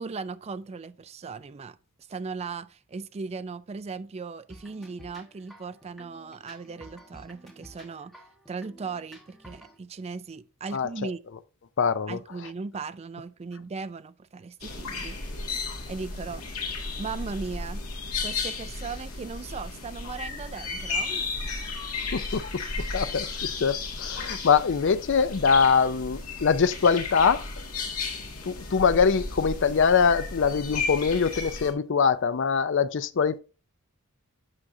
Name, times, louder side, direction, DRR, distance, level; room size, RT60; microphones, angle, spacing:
voice 1, 0.0-1.8 2.1-8.2 8.5-11.2 12.1-15.2 15.9-16.5 17.0-17.8 18.2-21.4, right 4 dB, 30° right, 0.3 m, -37 dB
sound 1, 4.5-9.8, right 1 dB, ahead, 1.3 m, -51 dB
voice 2, 10.7-11.1 11.8-12.2 22.1-22.4 22.8-23.3 23.6-27.5 28.4-33.4, left 6 dB, 55° left, 0.5 m, -23 dB
sound 2, 14.6-31.7, left 4 dB, 80° left, 1.9 m, -34 dB
8.6 x 6.2 x 2.6 m
head